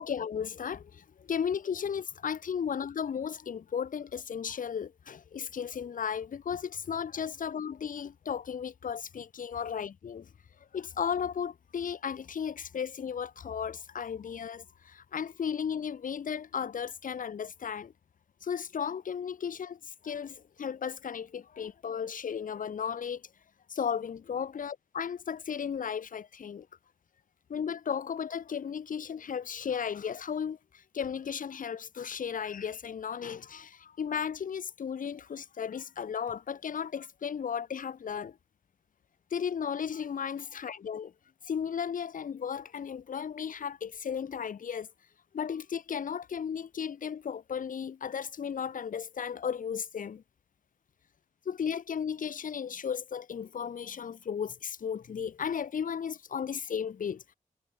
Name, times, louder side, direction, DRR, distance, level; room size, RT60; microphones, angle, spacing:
voice 1, 0.0-10.3 10.7-17.9 18.4-23.2 23.7-26.7 27.5-30.6 30.9-38.4 39.3-41.1 41.5-44.9 45.3-50.2 51.5-57.2, left 7 dB, 90° left, 2.5 m, -35 dB
wide cardioid pair, 140°, 13 cm